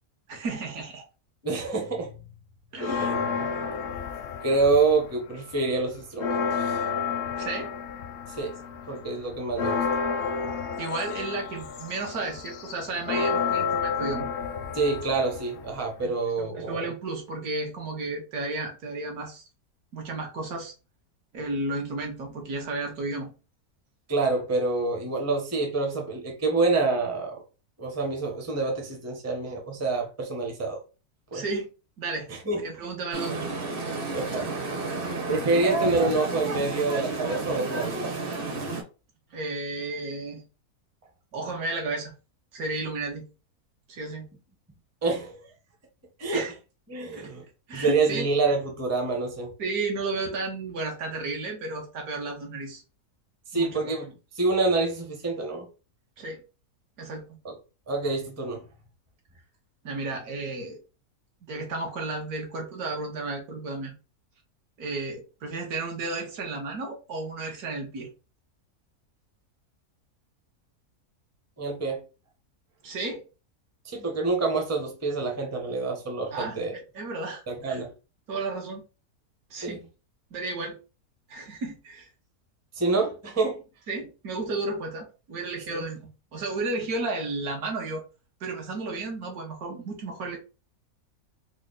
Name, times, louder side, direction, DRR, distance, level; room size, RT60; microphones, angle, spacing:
voice 1, 0.3-1.0 2.7-3.1 7.3-7.7 10.8-14.3 16.0-19.4 19.9-20.7 21.3-23.3 31.3-31.7 32.0-32.3 32.6-33.4 39.3-40.4 41.3-42.1 42.5-43.3 43.9-44.3 46.3-46.5 47.1-47.3 47.7-48.3 49.6-52.8 53.5-53.9 56.2-56.4 57.0-57.4 59.8-60.8 61.5-63.9 64.8-68.1 72.8-73.2 76.3-76.6 76.9-77.8 78.3-78.8 79.5-79.8 80.3-80.8 81.3-82.1 83.9-88.0 88.4-90.4, right 3 dB, 75° right, 1.5 m, -33 dB
voice 2, 1.4-2.1 2.8-3.6 4.4-6.8 8.3-8.5 8.9-9.8 14.7-16.8 24.1-27.4 27.8-30.8 31.3-31.4 32.3-32.6 34.1-34.5 35.3-37.9 45.0-45.4 46.2-46.4 46.9-47.4 47.7-49.5 53.5-54.1 54.4-55.7 57.4-57.5 57.9-58.6 71.6-72.0 73.8-76.7 77.5-77.9 79.6-79.8 82.8-83.6 85.7-85.8, right 3 dB, 15° right, 0.5 m, -27 dB
sound 1, 2.8-5.2 5.5-16.0, left 5 dB, 65° left, 0.7 m, -30 dB
sound 2, 33.1-38.8, right 3 dB, 45° right, 0.9 m, -31 dB
3.7 x 2.1 x 3.8 m
omnidirectional pair, 1.6 m